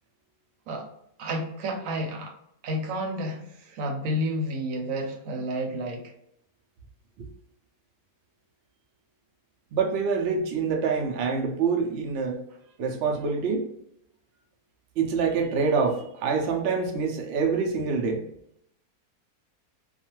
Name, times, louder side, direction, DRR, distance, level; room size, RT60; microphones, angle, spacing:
voice 1, 1.2-2.3 2.6-6.1, equal, 70° right, 2 dB, 0.9 m, -30 dB
voice 2, 9.7-12.4 12.8-13.7 15.0-18.3, right 5 dB, 85° right, 2 dB, 0.5 m, -26 dB
2.5 x 2.3 x 2.9 m, 0.74 s
omnidirectional pair, 1.7 m